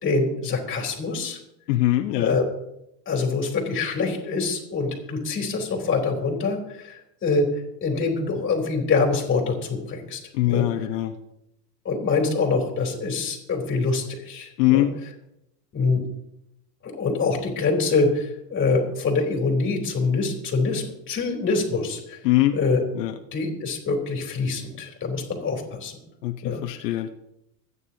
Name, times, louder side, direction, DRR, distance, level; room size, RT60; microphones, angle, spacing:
voice 1, 0.0-1.4 2.1-2.4 3.0-7.5 7.8-10.2 10.5-10.7 11.8-14.9 15.7-16.0 16.8-22.2 22.5-22.8 23.3-26.0 26.4-26.6, left 4 dB, 25° left, 1 dB, 3.4 m, -25 dB
voice 2, 1.7-2.4 10.3-11.1 14.6-14.9 22.2-22.6 22.9-23.1 26.2-27.1, left 15 dB, 75° left, 5 dB, 1.1 m, -22 dB
25.5 x 9.8 x 2.9 m, 0.82 s
supercardioid pair, 145°, 48 cm